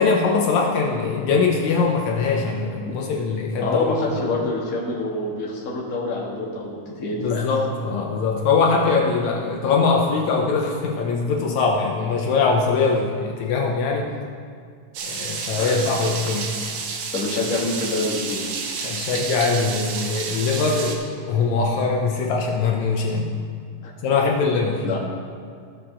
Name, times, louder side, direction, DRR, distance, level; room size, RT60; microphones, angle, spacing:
voice 1, 0.0-3.9 7.2-14.1 15.0-16.5 18.8-21.0 21.3-23.3 24.0-24.8, left 4 dB, 75° left, 0 dB, 2.1 m, -22 dB
voice 2, 3.6-7.5 15.6-15.9 17.1-18.5 23.8-24.2 24.8-25.0, left 2 dB, 35° left, -4 dB, 1.7 m, -27 dB
sound 1, 14.9-20.9, right 5 dB, 70° right, 2.2 m, -30 dB
17.0 x 6.7 x 3.7 m, 2.2 s
omnidirectional pair, 3.5 m